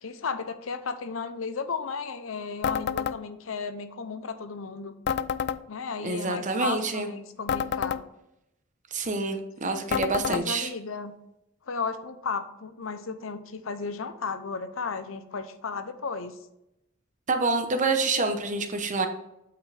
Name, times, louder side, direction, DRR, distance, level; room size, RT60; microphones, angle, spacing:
voice 1, 0.0-5.0 5.7-8.0 10.3-11.1 11.7-16.4, left 5 dB, 80° left, 11 dB, 0.7 m, -34 dB
sound 1, 2.6-3.2 5.1-5.6 7.5-8.0 9.9-10.4, left 7 dB, 55° left, 0.4 m, -28 dB
voice 2, 6.0-7.1 8.9-10.7 17.3-19.1, right 3 dB, 40° right, 6 dB, 1.0 m, -27 dB
8.5 x 5.8 x 3.4 m, 0.86 s
head